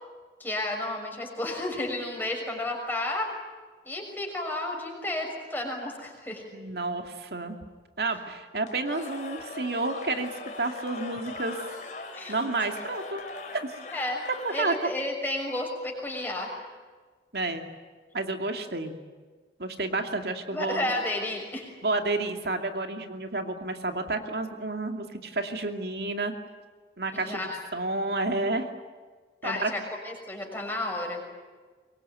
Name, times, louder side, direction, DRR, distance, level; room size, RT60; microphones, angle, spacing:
voice 1, 0.4-3.3 3.8-6.4 12.1-12.3 13.9-14.2 14.5-16.5 20.5-21.7 27.1-27.6 29.4-31.2, left 1 dB, 10° left, 0 dB, 6.2 m, -32 dB
voice 2, 6.5-7.6 8.0-10.3 10.6-11.6 12.3-13.3 13.5-13.7 14.4-14.9 17.3-17.6 18.1-19.0 19.6-20.9 21.8-26.3 27.0-27.4 27.7-28.7 29.4-29.7, right 2 dB, 65° right, 5 dB, 2.5 m, -30 dB
Cheering / Crowd, 8.6-15.0, left 2 dB, 40° left, 3.0 m, -41 dB
24.5 x 23.0 x 9.4 m, 1.4 s
head